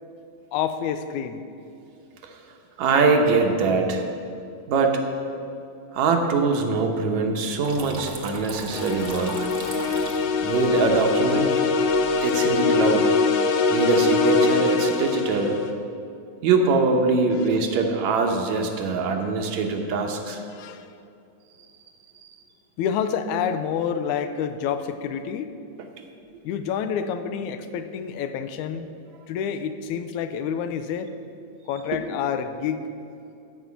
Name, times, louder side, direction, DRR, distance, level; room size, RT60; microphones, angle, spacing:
voice 1, 0.5-1.5 17.5-17.6 20.5-20.9 22.8-25.5 26.4-28.9 29.3-31.1 31.7-32.9, left 7 dB, 85° left, 10 dB, 2.0 m, -28 dB
voice 2, 2.8-4.0 4.7-5.0 5.9-9.5 10.4-11.5 12.2-13.1 13.7-15.6 16.4-20.4, right 4 dB, 75° right, 3 dB, 2.3 m, -22 dB
Water tap faucet / Trickle dribble, 7.6-12.6, right 4 dB, 55° right, 1.2 m, -40 dB
sound 1, 8.7-15.7, left 4 dB, 70° left, 1.7 m, -23 dB
13.5 x 5.4 x 8.4 m, 2.5 s
omnidirectional pair, 3.4 m